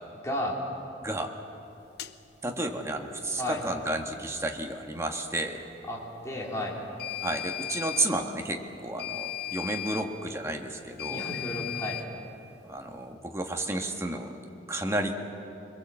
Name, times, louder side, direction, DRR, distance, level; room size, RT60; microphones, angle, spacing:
voice 1, 0.2-0.6 3.3-3.6 5.9-6.8 11.1-12.0, left 1 dB, 15° left, -4 dB, 3.4 m, -33 dB
voice 2, 1.0-1.3 2.4-5.6 7.2-11.2 12.6-14.4 14.7-15.1, right 1 dB, 15° right, 3 dB, 1.6 m, -32 dB
sound 1, 2.0-2.1 7.0-8.1 9.0-10.1 11.0-12.1, left 13 dB, 60° left, 0.7 m, -35 dB
24.0 x 22.0 x 7.6 m, 2.8 s
head